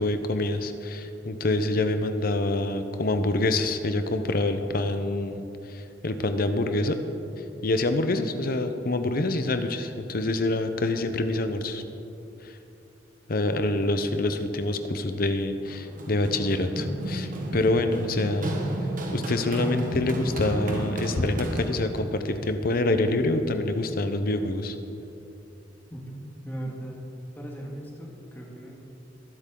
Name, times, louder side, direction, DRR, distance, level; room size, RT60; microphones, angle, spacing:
voice 1, 0.0-7.0 7.6-11.8 12.4-12.5 13.3-18.6 19.1-24.8, left 2 dB, 50° left, 8 dB, 0.8 m, -26 dB
Run, 15.7-22.0, right 1 dB, 45° right, 1.4 m, -32 dB
voice 2, 26.4-26.9 27.4-28.7, right 1 dB, 10° left, -2 dB, 1.9 m, -38 dB
22.0 x 7.9 x 3.9 m, 2.9 s
head